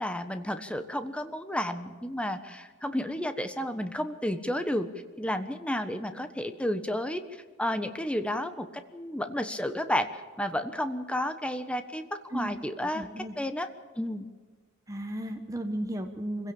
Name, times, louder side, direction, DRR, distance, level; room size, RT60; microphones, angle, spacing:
voice 1, 0.0-4.9 5.2-7.2 7.6-8.7 8.9-10.1 10.4-13.7 14.0-14.3, left 1 dB, 5° left, 8 dB, 1.2 m, -31 dB
voice 2, 12.9-13.3 14.9-16.5, right 1 dB, 15° right, 4 dB, 1.2 m, -34 dB
25.5 x 16.5 x 7.2 m, 1.5 s
head